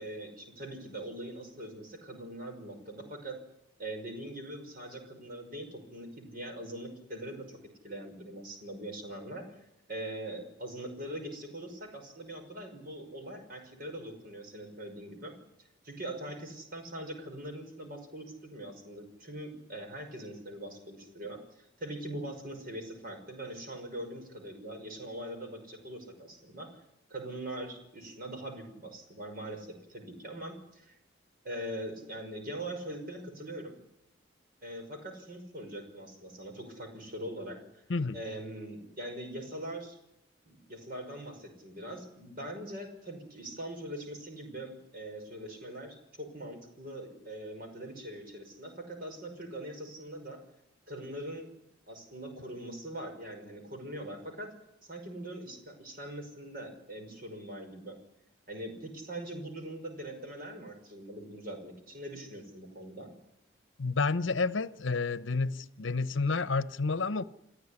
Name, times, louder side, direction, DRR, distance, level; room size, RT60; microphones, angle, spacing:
voice 1, 0.0-3.4 3.8-7.6 7.8-15.3 15.6-26.7 27.1-30.9 31.4-33.8 34.6-37.8 38.1-40.0 40.5-50.4 50.9-51.5 51.9-54.5 54.8-58.0 58.5-63.1, right 1 dB, 45° right, 5.8 m, -42 dB
voice 2, 63.8-67.2, left 4 dB, 70° left, 0.9 m, -30 dB
28.5 x 14.5 x 9.9 m
head